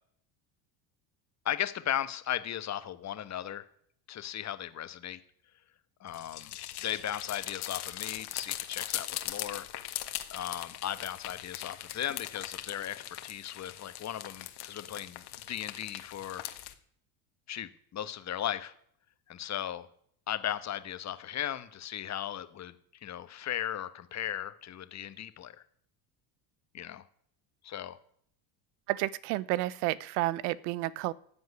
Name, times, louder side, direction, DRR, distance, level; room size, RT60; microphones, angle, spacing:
voice 1, 1.4-3.6 4.1-5.2 6.0-6.6 6.8-9.7 10.3-15.2 15.5-16.4 17.5-18.7 19.3-19.9 20.3-22.7 23.0-25.5 26.7-27.0 27.6-28.0, left 11 dB, 35° left, 12 dB, 1.3 m, -36 dB
sound 1, 6.1-16.7, left 13 dB, 55° left, 1.7 m, -40 dB
voice 2, 28.9-31.1, right 17 dB, 80° right, 21 dB, 0.9 m, -31 dB
13.5 x 7.8 x 9.7 m, 0.64 s
supercardioid pair, 100°, 46 cm